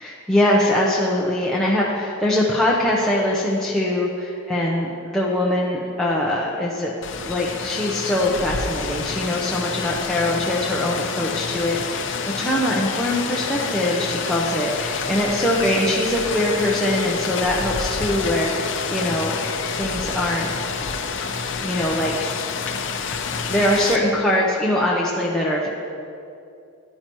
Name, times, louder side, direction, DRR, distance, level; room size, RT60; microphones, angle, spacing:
voice 1, 0.0-6.9 7.2-19.4 19.7-20.8 21.6-22.1 23.3-25.7, left 1 dB, 5° left, -6 dB, 0.8 m, -22 dB
Rain, 7.0-24.0, left 5 dB, 55° left, 0.6 m, -28 dB
14.5 x 10.5 x 3.1 m, 2.5 s
head